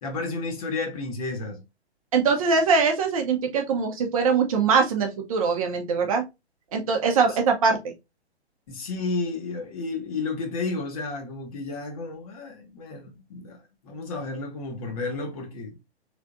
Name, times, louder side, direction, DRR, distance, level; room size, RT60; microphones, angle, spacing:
voice 1, 0.0-1.6 8.7-13.6 13.8-15.8, left 3 dB, 35° left, 0.9 m, -32 dB
voice 2, 2.1-6.2 6.7-7.8, right 5 dB, 30° right, 0.7 m, -22 dB
3.4 x 3.3 x 2.4 m
figure-of-eight pair, 125°, 33 cm